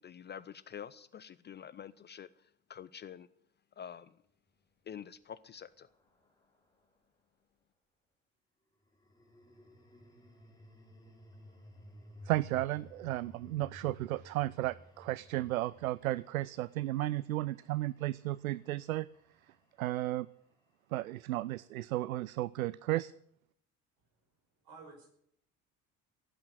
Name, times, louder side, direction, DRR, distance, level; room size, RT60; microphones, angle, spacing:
voice 1, 0.0-3.3 3.8-4.2 4.9-5.9, left 8 dB, 25° left, 16 dB, 0.5 m, -47 dB
sound 1, 4.6-7.1 8.8-21.0, left 1 dB, 10° left, 4.3 m, -57 dB
voice 2, 12.3-19.1 19.8-20.3 20.9-23.1, right 16 dB, 75° right, 20 dB, 0.5 m, -34 dB
voice 3, 24.0-25.1, right 4 dB, 55° right, 4 dB, 5.4 m, -55 dB
16.0 x 8.8 x 9.5 m, 0.70 s
figure-of-eight pair, 60°, 43 cm